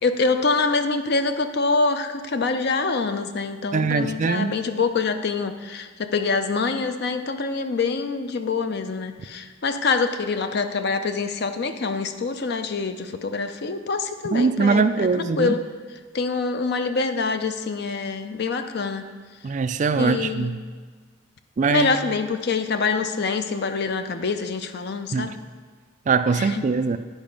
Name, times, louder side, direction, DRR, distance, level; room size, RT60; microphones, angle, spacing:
voice 1, 0.0-15.6 16.1-19.1 20.0-20.6 21.7-25.3 26.4-26.6, left 4 dB, 55° left, 8 dB, 0.5 m, -25 dB
voice 2, 3.7-4.5 14.2-15.6 19.4-20.6 21.6-21.9 25.1-25.3 26.1-27.0, right 4 dB, 40° right, 10 dB, 0.3 m, -22 dB
10.5 x 4.9 x 5.2 m, 1.5 s
head